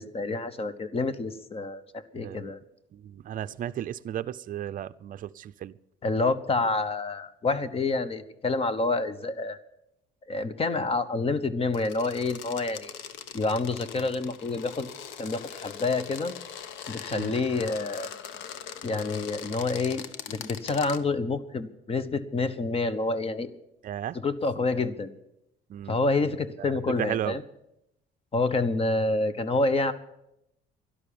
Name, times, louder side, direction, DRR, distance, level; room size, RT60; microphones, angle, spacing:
voice 1, 0.0-2.6 6.0-9.6 10.3-12.9 13.3-14.9 15.2-16.3 16.9-18.1 18.8-23.5 24.2-25.1 25.9-27.4 28.3-29.9, left 3 dB, 30° left, 1.0 m, -28 dB
voice 2, 2.1-2.5 2.9-5.8 17.1-17.3 23.8-24.2 25.7-26.0 26.6-27.4, right 11 dB, 45° right, 0.5 m, -34 dB
sound 1, 11.7-21.0, left 8 dB, 85° left, 1.1 m, -41 dB
12.5 x 11.5 x 8.6 m
cardioid pair, 120°, 19 cm